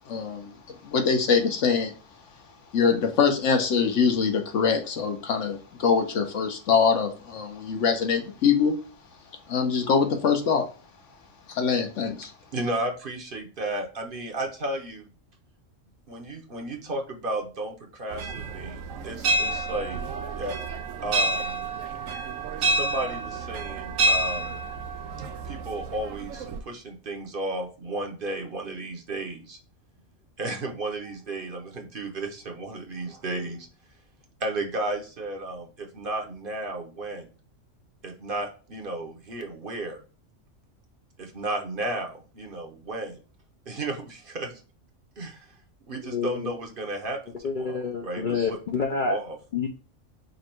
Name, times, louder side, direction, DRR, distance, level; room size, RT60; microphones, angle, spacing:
voice 1, 0.1-0.5 0.8-1.9 2.7-8.7 9.5-10.7 11.5-12.3, left 6 dB, 70° left, 5 dB, 1.2 m, -23 dB
voice 2, 12.5-15.1 16.1-20.0 20.4-20.6 21.0-21.6 22.6-24.6 25.4-29.6 30.4-33.7 34.4-37.3 38.0-40.0 41.2-43.2 43.7-44.6 45.2-45.5 45.9-48.6 49.1-49.4, right 2 dB, 50° right, 3 dB, 0.9 m, -33 dB
sound 1, 18.1-26.6, right 2 dB, 85° right, 1.0 m, -29 dB
voice 3, 45.9-46.5 47.4-49.2 49.5-49.7, left 5 dB, 55° left, 3 dB, 0.6 m, -28 dB
5.2 x 2.3 x 4.4 m, 0.36 s
omnidirectional pair, 1.3 m